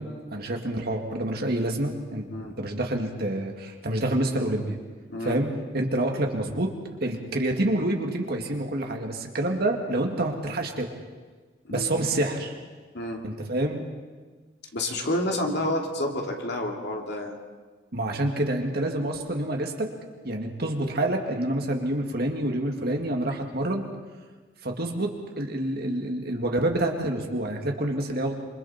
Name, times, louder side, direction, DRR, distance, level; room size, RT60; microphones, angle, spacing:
voice 1, 0.0-2.3 2.6-4.8 5.2-6.7 7.0-10.9 11.7-12.5 13.2-13.8 17.9-19.9 20.2-23.8 24.6-28.4, right 1 dB, 50° right, 2 dB, 2.3 m, -27 dB
voice 2, 14.7-17.4, left 1 dB, 55° left, 1 dB, 2.8 m, -29 dB
27.5 x 25.5 x 4.4 m, 1.4 s
head